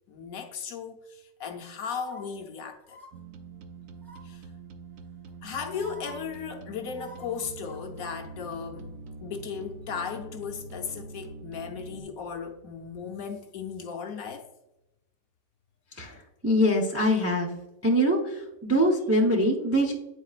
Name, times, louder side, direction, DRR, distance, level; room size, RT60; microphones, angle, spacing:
voice 1, 0.1-3.0 4.2-4.5 5.4-14.5, left 6 dB, 65° left, 1.1 m, -36 dB
sound 1, 1.9-2.2 2.8-3.1 4.0-4.4 5.3-5.4 5.7-6.1 6.9-8.2 8.5-8.6, equal, ahead, 1.3 m, -48 dB
sound 2, 3.1-12.0, right 4 dB, 65° right, 0.9 m, -44 dB
voice 2, 15.9-17.5 17.8-19.9, equal, 25° right, 0.3 m, -24 dB
9.1 x 4.4 x 2.4 m
omnidirectional pair, 1.8 m